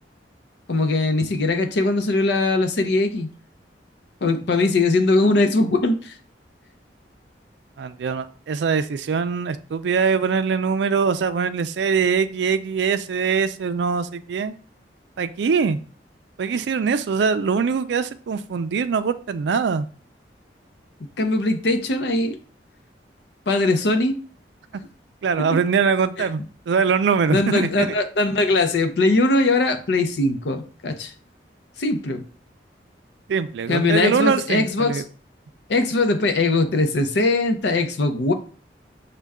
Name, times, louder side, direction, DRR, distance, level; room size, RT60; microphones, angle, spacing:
voice 1, 0.7-3.3 4.2-6.1 21.2-22.4 23.5-24.2 26.2-26.3 27.3-31.1 31.8-32.2 33.7-35.0 35.7-38.3, left 2 dB, 70° left, 7 dB, 0.6 m, -20 dB
voice 2, 7.8-14.5 15.2-15.8 16.4-19.9 25.2-27.9 33.3-35.0, right 5 dB, 80° right, 11 dB, 0.4 m, -22 dB
6.4 x 2.2 x 3.5 m, 0.41 s
head